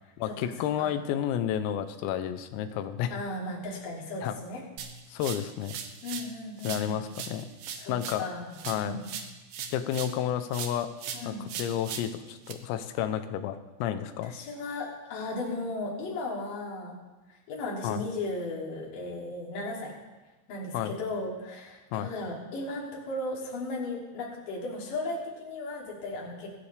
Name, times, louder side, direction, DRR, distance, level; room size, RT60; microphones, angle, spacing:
voice 1, 0.2-3.2 4.2-4.4 5.1-5.8 6.6-7.5 7.9-8.3 8.7-9.0 9.7-10.9 11.2-14.3 17.8-18.0 20.7-20.9 21.9-22.1, left 10 dB, 90° left, 10 dB, 3.5 m, -31 dB
voice 2, 3.1-4.6 6.0-7.0 7.8-9.0 11.1-11.5 14.2-17.0 17.5-19.9 20.5-26.5, left 2 dB, 45° left, -4 dB, 3.9 m, -36 dB
sound 1, 4.8-6.3 6.6-10.2 10.5-12.5, right 7 dB, 85° right, 2.1 m, -39 dB
26.0 x 9.9 x 3.4 m, 1.1 s
omnidirectional pair, 5.9 m